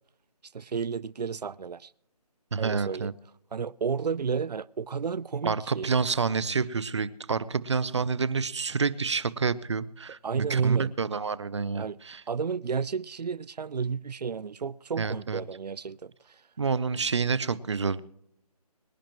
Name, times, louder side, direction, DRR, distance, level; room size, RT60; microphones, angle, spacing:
voice 1, 0.5-1.9 2.6-3.1 3.5-5.9 10.2-10.9 11.7-12.0 12.3-16.1, right 6 dB, 85° right, 0.5 m, -31 dB
voice 2, 2.5-3.1 5.4-12.2 15.0-15.4 16.6-18.0, right 5 dB, 45° right, 0.7 m, -28 dB
24.5 x 10.0 x 3.0 m
figure-of-eight pair, 170°, 20 cm